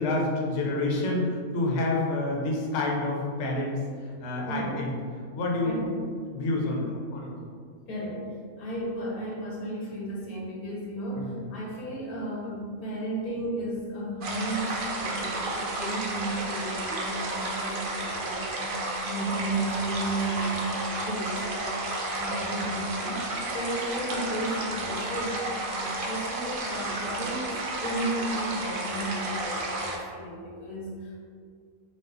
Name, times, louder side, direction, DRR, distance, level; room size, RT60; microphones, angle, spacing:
voice 1, 0.0-4.9 5.3-7.3 11.2-11.5, left 2 dB, 60° left, -2 dB, 0.9 m, -28 dB
voice 2, 7.9-31.2, right 1 dB, 90° left, -5 dB, 1.6 m, -34 dB
sound 1, 14.2-30.0, right 2 dB, 55° right, 0.6 m, -32 dB
5.3 x 2.0 x 3.8 m, 2.1 s
omnidirectional pair, 1.5 m